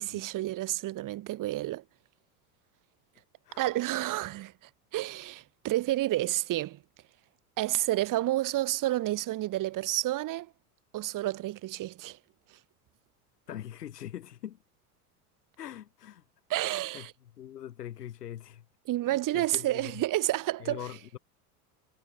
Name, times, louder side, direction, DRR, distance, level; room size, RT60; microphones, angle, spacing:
voice 1, 0.0-1.8 3.6-4.5 4.9-6.8 7.6-10.5 10.9-12.2 16.5-17.1 18.9-20.8, right 15 dB, 40° right, 2.0 m, -30 dB
voice 2, 13.5-14.6 15.6-16.2 16.7-18.7 19.1-20.0 20.6-21.2, left 11 dB, 85° left, 2.6 m, -43 dB
hypercardioid pair, 90°, 46 cm